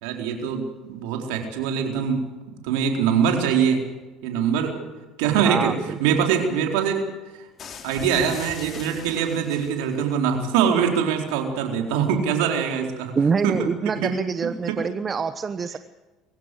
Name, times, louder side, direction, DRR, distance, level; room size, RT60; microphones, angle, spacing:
voice 1, 0.0-2.2 2.6-3.8 4.2-4.7 5.2-5.7 6.0-7.0 7.4-7.5 7.8-13.1 13.4-14.1 14.4-14.8, right 7 dB, 70° right, 3 dB, 4.3 m, -23 dB
voice 2, 5.4-6.0 13.2-15.8, right 5 dB, 35° right, 11 dB, 1.1 m, -25 dB
sound 1, 7.6-10.0, left 6 dB, 45° left, 2.7 m, -39 dB
23.5 x 15.5 x 8.0 m, 1.2 s
hypercardioid pair, 65°, 0 cm